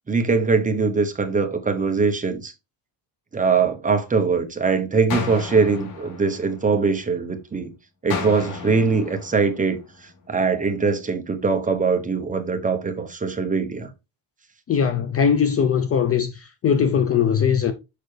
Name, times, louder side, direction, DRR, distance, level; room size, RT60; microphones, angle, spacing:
voice 1, 0.1-2.5 3.3-7.7 8.0-9.8 10.3-13.9, right 4 dB, 15° right, 0.8 m, -22 dB
sound 1, 5.1-7.2 8.1-10.2, left 4 dB, 65° left, 2.7 m, -34 dB
voice 2, 14.7-17.7, left 7 dB, 30° left, 0.4 m, -20 dB
6.7 x 5.5 x 3.2 m
cardioid pair, 175°, 48 cm